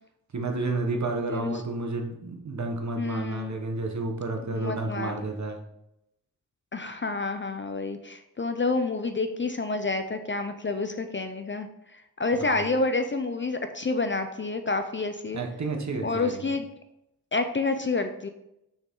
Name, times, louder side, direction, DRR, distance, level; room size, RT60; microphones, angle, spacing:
voice 1, 0.3-5.6 12.4-12.6 15.3-16.5, right 2 dB, 45° right, 3 dB, 1.2 m, -31 dB
voice 2, 3.0-3.5 4.5-5.2 6.7-15.4 16.0-16.7 17.3-18.3, left 3 dB, 30° left, 8 dB, 0.5 m, -29 dB
6.3 x 6.3 x 3.7 m, 0.84 s
wide cardioid pair, 140°, 38 cm